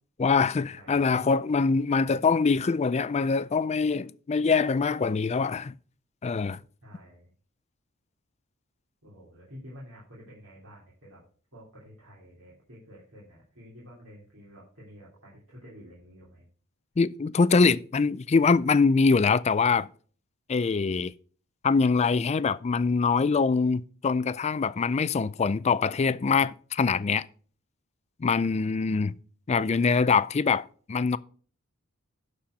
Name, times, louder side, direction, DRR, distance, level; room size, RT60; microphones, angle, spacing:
voice 1, 0.2-5.7 6.2-6.6 17.0-19.9 20.5-21.1 21.6-27.2 28.2-29.1 29.5-31.2, left 4 dB, 30° left, 0.4 m, -24 dB
voice 2, 0.7-1.1 6.8-7.3 9.0-11.2 11.5-16.5 28.3-28.5, equal, 65° right, 3.0 m, -50 dB
11.5 x 4.3 x 6.3 m
head